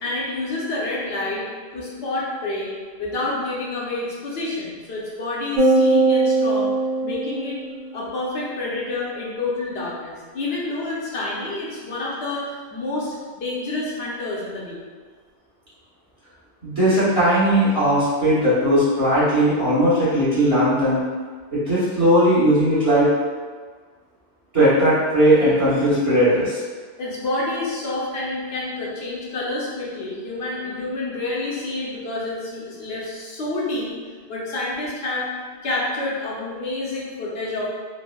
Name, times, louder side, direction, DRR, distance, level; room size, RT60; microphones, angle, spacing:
voice 1, 0.0-1.5 1.7-2.7 3.0-6.7 7.0-7.6 7.9-14.8 27.0-33.9 34.3-35.3 35.6-37.7, left 2 dB, 75° left, -6 dB, 0.9 m, -28 dB
sound 1, 5.6-8.1, right 3 dB, 60° right, 0.9 m, -20 dB
voice 2, 16.6-21.0 21.5-23.1 24.5-26.6, equal, 35° right, -14 dB, 1.5 m, -18 dB
3.9 x 2.0 x 2.2 m, 1.5 s
omnidirectional pair, 1.0 m